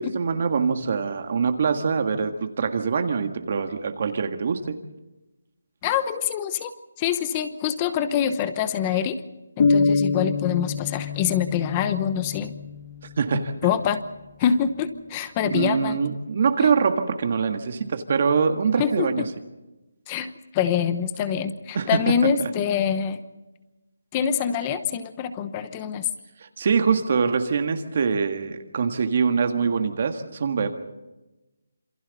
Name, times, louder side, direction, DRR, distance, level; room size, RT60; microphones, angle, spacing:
voice 1, 0.0-4.8 13.2-13.7 15.4-19.2 21.7-22.1 22.4-22.5 26.4-30.7, right 5 dB, 35° right, 6 dB, 1.6 m, -24 dB
voice 2, 5.8-6.7 7.0-9.2 9.6-12.5 13.6-14.0 14.4-16.0 16.6-16.7 18.8-19.3 20.1-23.2 24.1-26.1, left 8 dB, 15° left, 12 dB, 0.9 m, -25 dB
sound 1, 9.6-13.4, left 4 dB, 35° left, 1.8 m, -25 dB
27.5 x 27.0 x 4.1 m, 1.0 s
hypercardioid pair, 175°, 0 cm